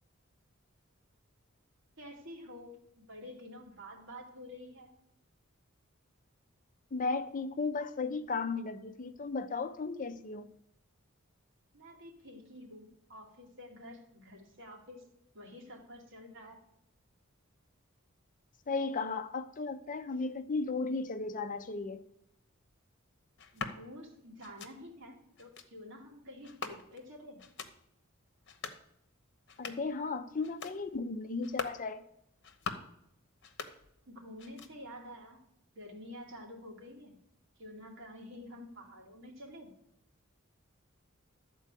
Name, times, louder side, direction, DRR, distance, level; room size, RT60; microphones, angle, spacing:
voice 1, 2.0-4.9 11.7-15.1 15.3-16.6 23.5-27.4 34.1-35.4 35.7-37.2 37.6-39.7, left 1 dB, 65° right, 2.6 m, -49 dB
voice 2, 6.9-10.5 18.7-22.0 29.6-32.0, left 4 dB, 40° left, 0.6 m, -35 dB
sound 1, 23.4-23.8 24.4-24.7 25.4-25.7 26.4-27.1 27.4-27.7 28.4-28.8 29.4-29.9 30.4-30.8 31.4-31.8 32.4-32.9 33.4-34.1 34.4-35.0, left 5 dB, 60° left, 1.1 m, -43 dB
12.5 x 4.6 x 8.3 m
head